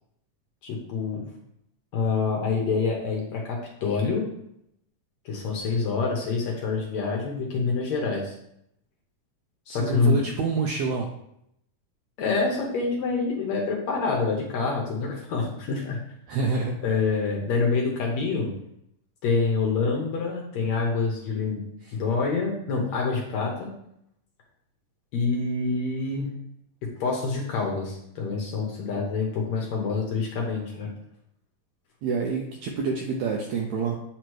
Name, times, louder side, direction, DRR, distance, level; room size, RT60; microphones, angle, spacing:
voice 1, 0.6-1.3 1.9-4.3 5.3-8.3 9.7-10.2 12.2-16.0 16.8-18.5 19.2-21.6 21.9-23.7 25.1-26.4 26.8-30.9, left 4 dB, 65° left, -1 dB, 2.0 m, -26 dB
voice 2, 9.7-11.1 16.3-16.8 21.8-21.9 32.0-34.0, right 4 dB, 80° right, 1 dB, 1.6 m, -27 dB
8.8 x 3.0 x 4.6 m, 0.77 s
omnidirectional pair, 3.9 m